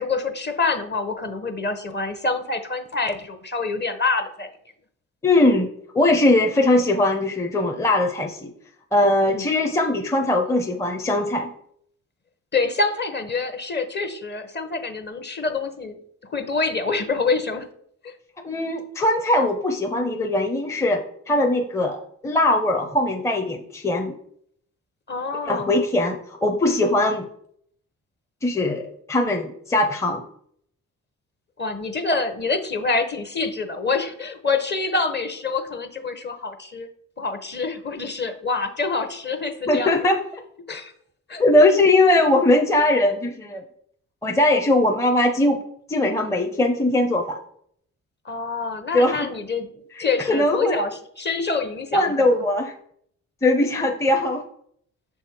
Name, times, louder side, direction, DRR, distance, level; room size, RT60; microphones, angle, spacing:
voice 1, 0.0-4.5 9.2-9.5 12.5-17.7 18.0-18.1 25.1-25.7 31.6-36.9 37.2-40.0 40.7-40.9 41.3-41.4 48.2-49.7 50.0-50.9 51.2-52.1, left 3 dB, 30° left, 7 dB, 1.0 m, -26 dB
voice 2, 5.2-5.7 5.9-8.5 8.9-11.5 18.4-24.2 25.5-27.3 28.4-30.2 39.7-40.2 41.4-43.6 44.2-45.6 45.9-47.4 48.9-49.3 49.9-50.8 51.9-52.7 53.4-54.4, left 1 dB, 10° left, 4 dB, 0.6 m, -20 dB
6.2 x 3.5 x 4.4 m, 0.66 s
supercardioid pair, 65°, 32 cm